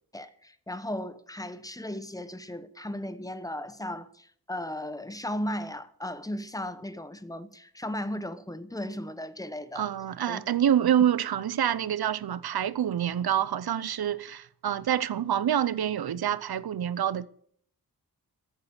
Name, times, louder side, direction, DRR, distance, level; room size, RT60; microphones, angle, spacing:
voice 1, 0.1-9.9 10.3-10.4, left 1 dB, 10° left, 0.9 m, -36 dB
voice 2, 9.8-17.3, right 10 dB, 80° right, 0.7 m, -27 dB
14.5 x 9.1 x 6.8 m
wide cardioid pair, 135°, 37 cm